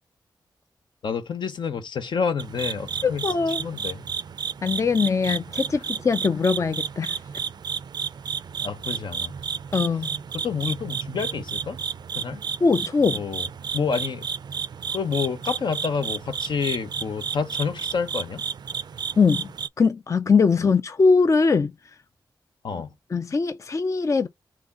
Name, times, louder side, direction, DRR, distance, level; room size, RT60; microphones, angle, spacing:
voice 1, 1.0-4.1 8.6-9.3 10.3-11.8 12.1-12.4 13.1-13.5 13.7-14.3 14.9-18.4 22.6-22.9, left 6 dB, 70° left, 0.8 m, -29 dB
sound 1, 2.4-19.7, right 6 dB, 60° right, 0.4 m, -32 dB
voice 2, 3.0-3.6 4.6-7.2 9.7-10.2 12.6-13.2 19.2-19.5 19.8-21.7 22.7-22.8 23.1-24.3, left 4 dB, 40° left, 0.4 m, -21 dB
4.0 x 3.0 x 3.6 m
cardioid pair, 70°, 8 cm